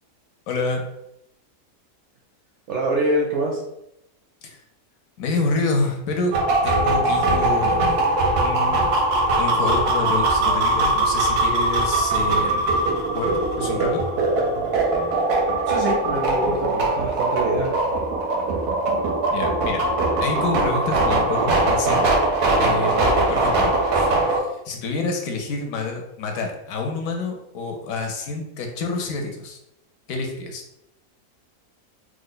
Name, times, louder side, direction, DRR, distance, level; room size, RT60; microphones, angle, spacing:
voice 1, 0.5-0.8 4.4-4.6 5.2-6.4 6.6-7.9 8.4-8.9 9.3-12.8 13.1-13.3 13.6-14.0 19.3-19.8 20.2-22.1 22.6-24.1 24.3-29.6 30.1-30.6, left 3 dB, 70° left, 3 dB, 0.9 m, -28 dB
voice 2, 2.7-3.6 15.7-17.7, right 1 dB, 65° right, -1 dB, 0.7 m, -25 dB
sound 1, 6.3-24.4, right 2 dB, 85° right, 1.2 m, -21 dB
3.1 x 2.1 x 3.8 m, 0.84 s
omnidirectional pair, 1.6 m